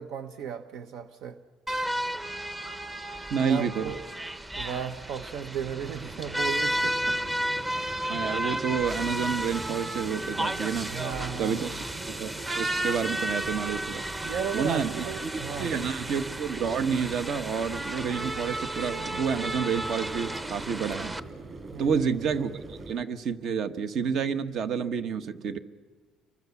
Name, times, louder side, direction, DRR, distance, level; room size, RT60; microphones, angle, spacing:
voice 1, 0.0-1.4 3.4-4.0 4.6-7.2 10.8-11.7 14.2-15.7 21.7-22.2, right 8 dB, 75° right, 9 dB, 1.0 m, -35 dB
sound 1, 1.7-21.2, right 1 dB, 15° right, 0.9 m, -33 dB
voice 2, 3.3-3.9 8.1-11.0 11.4-11.7 12.1-14.0 14.5-15.3 15.6-21.1 21.8-25.6, right 6 dB, 55° right, 10 dB, 1.3 m, -29 dB
sound 2, 5.5-22.9, right 3 dB, 35° right, 7.3 m, -44 dB
28.5 x 23.0 x 7.2 m, 1.4 s
cardioid pair, 140°, 0 cm